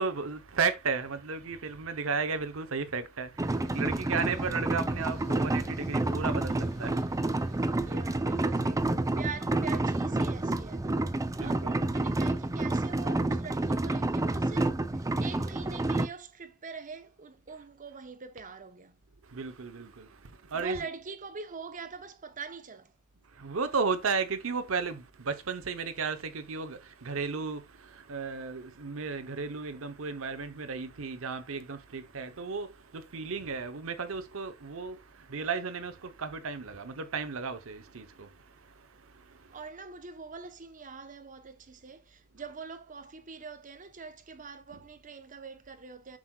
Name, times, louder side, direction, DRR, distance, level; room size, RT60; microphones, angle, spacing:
voice 1, 0.0-7.9 11.3-11.8 19.3-20.8 23.3-39.6, right 5 dB, 75° right, 0.8 m, -34 dB
sound 1, 3.4-16.1, right 2 dB, 15° right, 0.5 m, -29 dB
sound 2, 3.6-8.6, left 1 dB, 80° left, 3.1 m, -54 dB
voice 2, 7.8-11.0 11.4-19.0 20.5-22.9 39.5-46.2, right 5 dB, 40° right, 0.9 m, -44 dB
7.5 x 6.2 x 2.3 m
head